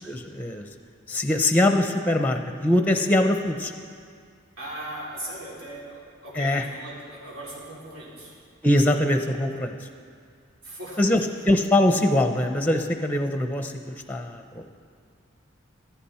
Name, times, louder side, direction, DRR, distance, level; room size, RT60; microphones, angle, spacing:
voice 1, 0.0-0.7 1.1-3.7 6.4-6.6 8.6-9.7 11.0-11.2 11.4-14.6, left 1 dB, 10° left, 6 dB, 0.6 m, -22 dB
voice 2, 4.6-8.3 10.6-11.5, right 1 dB, 90° right, -6 dB, 4.3 m, -39 dB
15.0 x 14.0 x 4.3 m, 2.2 s
head